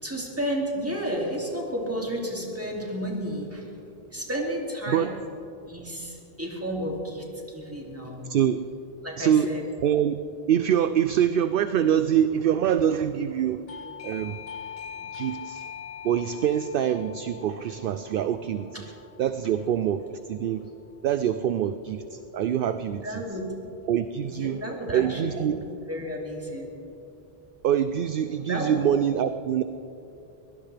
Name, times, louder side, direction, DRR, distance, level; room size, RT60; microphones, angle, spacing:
voice 1, 0.0-3.7 4.1-5.2 5.7-8.2 9.0-9.6 22.8-23.5 24.3-25.5 25.9-26.7 28.5-28.8, equal, 15° right, -2 dB, 2.5 m, -32 dB
voice 2, 8.2-8.6 9.2-9.5 9.8-10.2 10.5-13.6 14.0-14.4 15.1-15.7 16.0-18.8 19.2-20.7 21.0-23.2 23.8-24.6 24.9-25.6 27.6-29.6, right 9 dB, 65° right, 11 dB, 0.7 m, -25 dB
Doorbell, 13.7-20.2, left 7 dB, 70° left, 1.0 m, -42 dB
23.0 x 17.5 x 3.4 m, 2.9 s
omnidirectional pair, 1.1 m